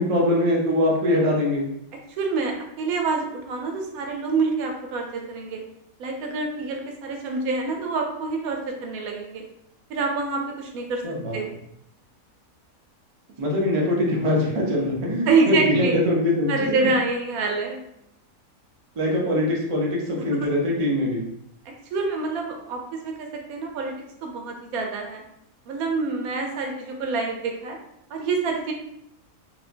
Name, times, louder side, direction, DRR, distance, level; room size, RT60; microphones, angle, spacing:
voice 1, 0.0-1.6 11.0-11.4 13.4-16.5 19.0-21.2, left 1 dB, 45° right, -3 dB, 0.4 m, -22 dB
voice 2, 2.2-5.6 6.0-9.4 9.9-11.0 11.3-11.5 15.3-16.0 16.5-17.8 20.4-20.5 21.9-23.9 24.2-25.2 25.7-27.8 28.1-28.7, right 4 dB, 90° right, 2 dB, 1.1 m, -26 dB
2.8 x 2.2 x 2.5 m, 0.79 s
omnidirectional pair, 1.5 m